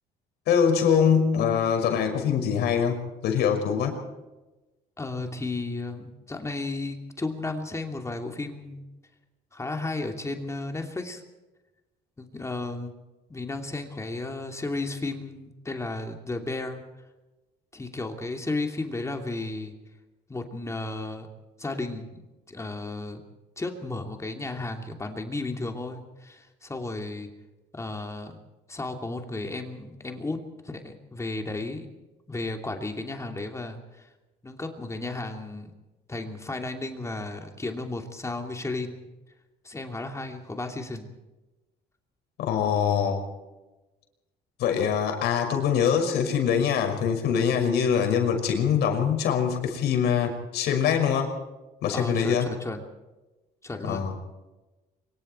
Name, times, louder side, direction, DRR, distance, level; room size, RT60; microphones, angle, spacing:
voice 1, 0.5-4.0 42.4-43.2 44.6-51.3 51.8-52.5 53.9-54.1, left 7 dB, 75° left, 4 dB, 5.9 m, -23 dB
voice 2, 5.0-8.8 9.5-11.2 12.2-12.9 13.3-16.8 17.7-19.7 20.3-21.3 21.6-23.2 23.6-27.3 27.7-28.4 28.7-30.4 30.6-31.9 32.3-34.1 34.4-35.7 36.1-39.1 39.6-41.1 51.9-52.8 53.6-54.0, left 2 dB, 15° left, 4 dB, 2.7 m, -34 dB
25.0 x 23.5 x 4.5 m, 1.1 s
cardioid pair, 110°, 17 cm